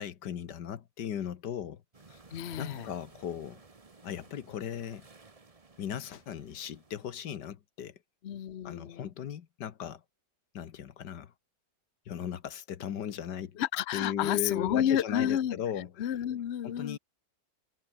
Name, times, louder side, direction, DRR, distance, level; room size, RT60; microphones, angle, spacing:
voice 1, 0.0-1.8 2.1-2.2 2.6-3.6 4.0-5.1 5.8-8.0 8.6-10.0 10.5-11.3 12.1-13.6 13.9-15.9 16.6-17.0, left 9 dB, 75° left, 1.8 m, -37 dB
sound 1, 1.9-7.2, right 3 dB, 20° right, 1.2 m, -56 dB
voice 2, 2.3-2.9 8.2-9.1 13.6-15.6 16.0-17.0, left 10 dB, 50° left, 0.9 m, -30 dB
omnidirectional pair, 1.9 m